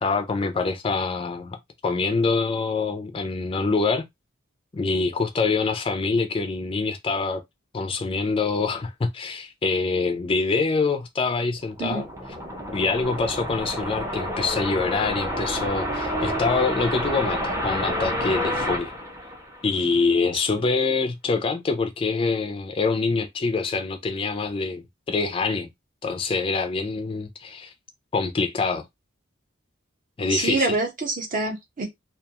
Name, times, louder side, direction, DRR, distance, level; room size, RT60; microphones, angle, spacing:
voice 1, 0.0-1.6 1.8-4.0 4.7-7.4 7.7-12.1 12.7-18.9 19.6-25.7 26.0-27.7 28.1-28.8 30.2-30.8, left 4 dB, 25° left, 0.3 m, -25 dB
sound 1, 11.6-19.9, equal, 15° right, 0.6 m, -29 dB
voice 2, 30.3-31.9, right 3 dB, 40° right, 0.8 m, -26 dB
2.3 x 2.2 x 2.8 m
head